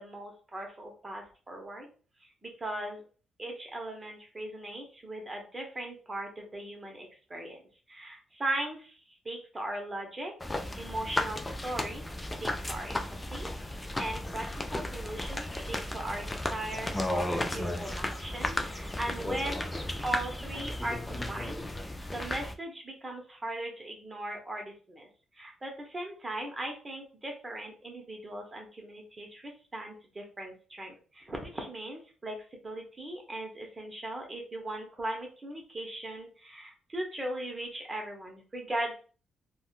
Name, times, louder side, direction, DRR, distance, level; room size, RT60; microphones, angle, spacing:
voice 1, 0.0-1.9 2.2-3.0 3.4-7.6 7.9-9.0 9.2-10.3 10.8-12.1 12.4-19.7 20.0-25.1 25.3-38.9, right 1 dB, 20° right, 2 dB, 0.9 m, -39 dB
sound 1, 10.4-22.5, left 1 dB, 15° left, 0.3 m, -34 dB
3.5 x 2.2 x 2.4 m, 0.38 s
cardioid pair, 90°, 0 cm